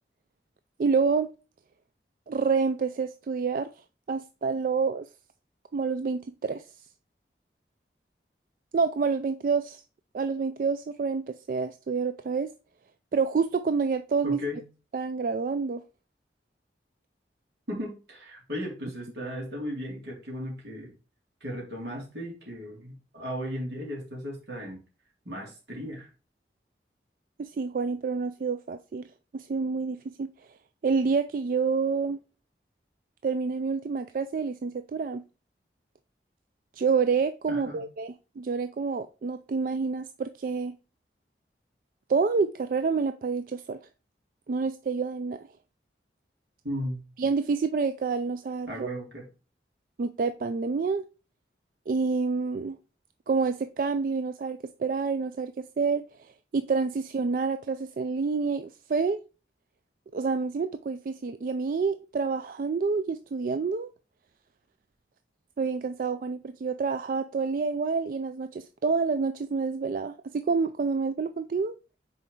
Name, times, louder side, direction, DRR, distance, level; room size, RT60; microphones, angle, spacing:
voice 1, 0.8-1.3 2.3-3.7 4.1-5.1 5.7-6.6 8.7-9.8 10.1-12.5 13.1-14.4 14.9-15.8 27.4-30.3 30.8-32.2 33.2-35.2 36.8-40.8 42.1-43.8 44.5-45.4 47.2-48.9 50.0-51.0 51.9-52.8 53.3-59.2 60.1-63.9 65.6-71.8, right 5 dB, 50° right, 0.3 m, -28 dB
voice 2, 14.2-14.6 17.7-20.9 21.4-24.8 25.2-26.1 37.5-37.8 46.6-47.0 48.7-49.3, equal, 80° right, 3.0 m, -36 dB
6.0 x 4.4 x 3.8 m
head